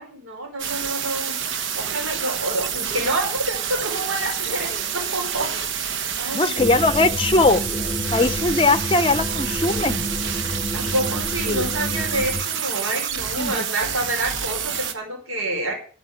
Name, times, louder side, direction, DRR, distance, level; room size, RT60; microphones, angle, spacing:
voice 1, 0.0-1.5 1.7-5.5 6.2-7.1 10.7-15.7, right 1 dB, 90° right, 1 dB, 4.8 m, -28 dB
sound 1, 0.6-14.9, right 8 dB, 70° right, 1.3 m, -28 dB
Telephone, 2.9-3.4 3.7-5.5 7.2-8.7 8.9-9.6, right 1 dB, 45° right, 4.6 m, -41 dB
voice 2, 6.3-7.6 8.1-10.1 11.5-11.7 13.4-13.6, left 2 dB, 25° left, 13 dB, 0.6 m, -20 dB
sound 2, 6.6-12.4, left 1 dB, 15° right, 1.1 m, -30 dB
13.0 x 6.0 x 8.8 m, 0.41 s
head